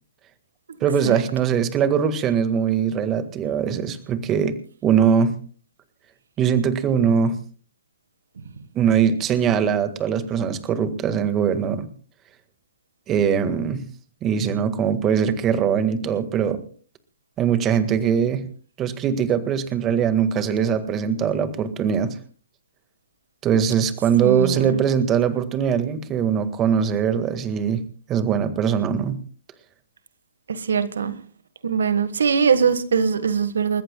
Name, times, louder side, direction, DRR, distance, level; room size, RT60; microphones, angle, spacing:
voice 1, 0.8-5.3 6.4-7.4 8.8-11.9 13.1-13.8 14.2-16.6 17.4-18.4 18.8-22.2 23.4-27.8 28.1-29.2, right 7 dB, 20° right, 1.8 m, -21 dB
voice 2, 24.2-24.8 30.5-31.2 31.6-33.8, right 6 dB, 75° right, 1.5 m, -21 dB
29.5 x 14.5 x 2.3 m
hypercardioid pair, 135°, 0 cm